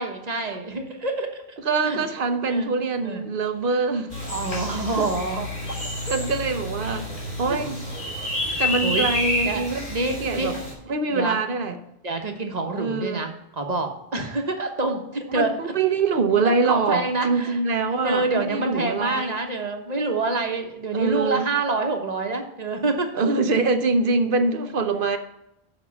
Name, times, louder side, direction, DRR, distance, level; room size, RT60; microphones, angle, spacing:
voice 1, 0.0-1.6 1.8-2.0 2.4-2.7 3.0-3.2 4.3-5.8 8.5-9.1 9.4-10.6 11.1-11.4 12.0-15.5 16.7-17.6 18.0-23.1, right 3 dB, 40° right, 4 dB, 1.2 m, -27 dB
voice 2, 1.6-4.1 4.7-5.1 6.1-7.1 7.4-7.8 8.6-9.9 10.2-10.6 10.9-11.8 12.8-13.3 15.3-19.3 20.9-21.5 23.1-25.2, right 4 dB, 60° right, 8 dB, 1.0 m, -24 dB
sound 1, 4.1-10.7, left 1 dB, 45° left, 3.3 m, -29 dB
7.5 x 5.6 x 7.0 m, 0.85 s
omnidirectional pair, 1.1 m